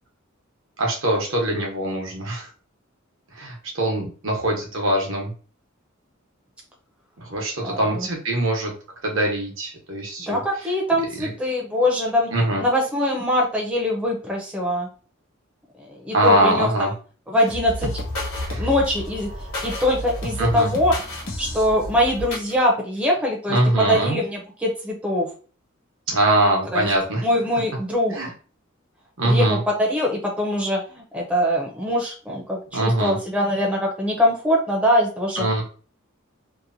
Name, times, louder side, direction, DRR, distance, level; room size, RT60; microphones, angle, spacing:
voice 1, 0.8-2.5 3.3-5.3 7.2-8.7 9.0-10.4 11.2-11.3 12.3-12.6 16.1-16.9 18.5-18.7 20.4-20.7 23.5-24.2 26.1-27.2 28.1-28.3 29.2-29.6 32.7-33.1 35.4-35.6, right 1 dB, 65° right, 0 dB, 0.9 m, -22 dB
voice 2, 7.6-8.1 10.2-12.3 12.6-14.9 15.8-16.9 17.3-17.9 18.5-20.9 21.4-25.3 26.7-26.9 27.2-28.2 29.2-35.5, left 1 dB, 5° right, -2 dB, 0.5 m, -23 dB
sound 1, 17.5-22.5, left 1 dB, 80° left, 1.1 m, -31 dB
2.8 x 2.1 x 2.5 m, 0.38 s
head